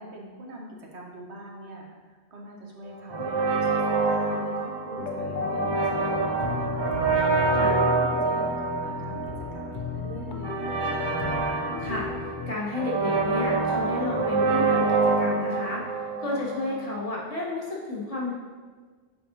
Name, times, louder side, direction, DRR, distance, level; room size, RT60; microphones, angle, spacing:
voice 1, 0.0-7.1 7.4-10.9, right 1 dB, 75° right, -1 dB, 1.3 m, -43 dB
sound 1, 3.1-16.9, right 3 dB, 45° right, 0.3 m, -26 dB
sound 2, 5.0-12.5, left 4 dB, 50° left, 0.7 m, -33 dB
voice 2, 12.5-15.8 16.2-18.3, left 2 dB, 35° left, -5 dB, 1.2 m, -32 dB
8.6 x 4.8 x 2.7 m, 1.5 s
omnidirectional pair, 1.1 m